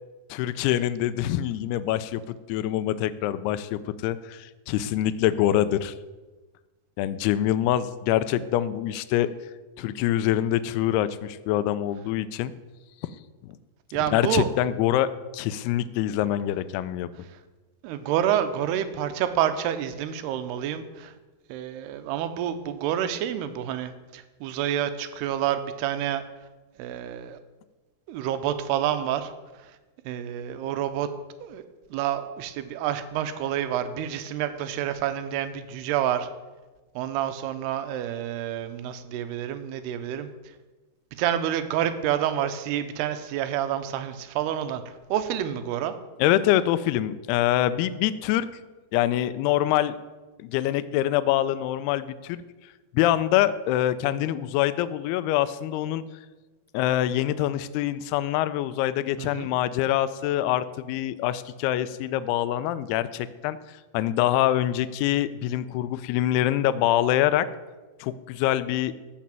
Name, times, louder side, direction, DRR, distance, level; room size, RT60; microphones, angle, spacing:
voice 1, 0.3-5.9 7.0-9.3 9.8-12.5 14.1-17.1 46.2-48.5 48.9-50.0 50.4-52.4 52.9-56.0 56.7-63.6 63.9-67.5 68.0-68.9, left 12 dB, 85° left, 14 dB, 2.5 m, -25 dB
voice 2, 13.9-14.5 17.8-21.1 21.5-26.2 26.8-27.4 28.1-29.3 30.1-31.1 31.4-31.6 31.9-36.3 37.0-40.3 41.2-44.8 45.1-45.9 59.2-59.5, right 10 dB, 85° right, 10 dB, 2.8 m, -28 dB
13.5 x 5.6 x 7.5 m, 1.2 s
omnidirectional pair, 4.6 m